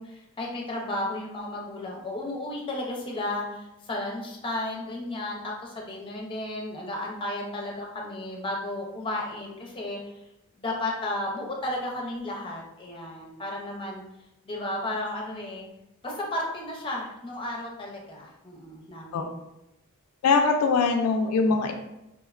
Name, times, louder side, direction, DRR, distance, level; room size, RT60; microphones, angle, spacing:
voice 1, 0.0-10.0 10.6-14.0 14.4-15.7 16.0-19.4, left 1 dB, 25° left, -2 dB, 0.5 m, -33 dB
voice 2, 20.2-21.7, left 4 dB, 85° left, 4 dB, 0.3 m, -22 dB
3.2 x 2.1 x 2.4 m, 0.90 s
head